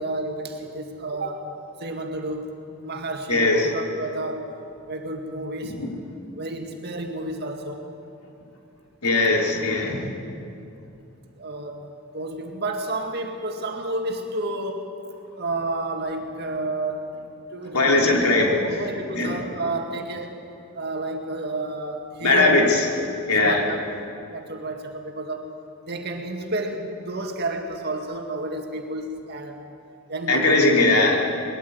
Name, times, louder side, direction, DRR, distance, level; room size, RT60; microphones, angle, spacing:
voice 1, 0.0-1.5 1.8-2.5 2.8-4.5 4.9-5.8 6.4-7.8 9.8-9.9 11.4-15.0 15.4-17.1 17.5-18.4 18.7-20.4 20.7-22.7 23.4-23.8 24.3-25.5 25.9-29.6 30.1-30.6, right 2 dB, 45° right, 3 dB, 2.1 m, -31 dB
voice 2, 3.3-3.7 5.6-5.9 9.0-10.0 17.7-18.5 19.1-19.3 22.2-22.9 23.3-23.6 30.3-31.4, left 2 dB, 90° left, 0 dB, 3.4 m, -19 dB
20.5 x 13.5 x 9.4 m, 2.6 s
head